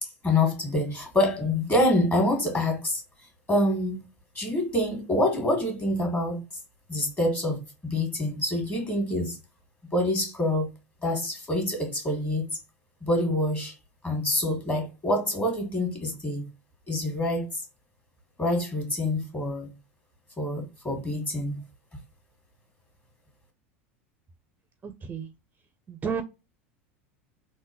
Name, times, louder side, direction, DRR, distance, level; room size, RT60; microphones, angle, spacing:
voice 1, 0.0-3.0 3.5-4.1 4.3-6.4 6.9-9.4 9.9-10.7 11.0-12.5 13.1-13.8 14.0-16.5 16.9-17.6 18.4-19.7 20.4-21.6, left 1 dB, 25° left, 2.0 m, -26 dB
voice 2, 24.8-25.3 25.9-26.2, right 6 dB, 25° right, 0.5 m, -32 dB
3.5 x 2.6 x 2.9 m
hypercardioid pair, 85°, 7 cm